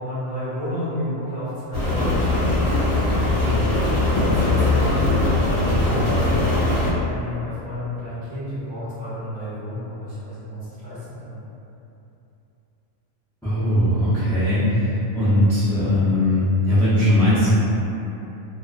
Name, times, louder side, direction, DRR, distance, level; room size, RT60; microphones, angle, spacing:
voice 1, 0.0-2.3 2.7-6.4 7.1-11.4, left 1 dB, 40° right, -14 dB, 1.1 m, -32 dB
Rain, 1.7-6.9, left 2 dB, 60° left, 1.0 m, -20 dB
voice 2, 13.4-14.9 15.1-17.5, left 1 dB, 5° left, -14 dB, 0.3 m, -19 dB
2.4 x 2.2 x 2.4 m, 2.9 s
omnidirectional pair, 1.4 m